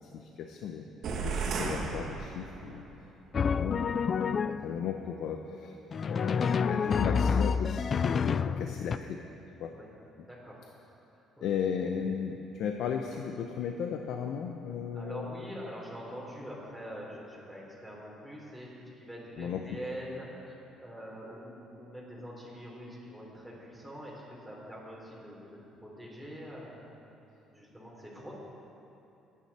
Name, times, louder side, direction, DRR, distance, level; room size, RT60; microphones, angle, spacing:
voice 1, 0.1-0.8 1.2-2.8 3.3-5.8 6.0-9.2 9.6-9.7 11.4-15.3 19.4-19.7, left 7 dB, 70° left, 3 dB, 0.8 m, -35 dB
sound 1, 1.0-2.9, right 4 dB, 60° right, 1.6 m, -34 dB
Drum, 3.3-4.8 5.9-9.0, left 6 dB, 35° left, 0.3 m, -28 dB
voice 2, 10.3-10.6 11.1-11.6 14.9-21.5 21.8-26.9 27.5-28.3, equal, ahead, -5 dB, 3.9 m, -44 dB
22.5 x 9.7 x 4.4 m, 2.9 s
cardioid pair, 130°, 0 cm